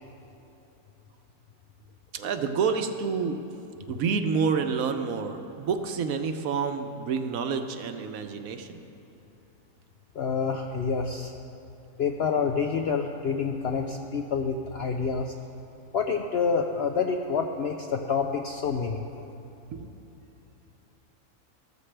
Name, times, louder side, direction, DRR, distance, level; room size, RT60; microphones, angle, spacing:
voice 1, 2.1-3.4 3.9-8.8 19.7-20.1, right 5 dB, 70° right, 7 dB, 1.1 m, -28 dB
voice 2, 10.1-11.3 12.0-15.3 15.9-19.0, left 5 dB, 70° left, 3 dB, 0.6 m, -28 dB
14.0 x 13.5 x 3.3 m, 3.0 s
omnidirectional pair, 1.6 m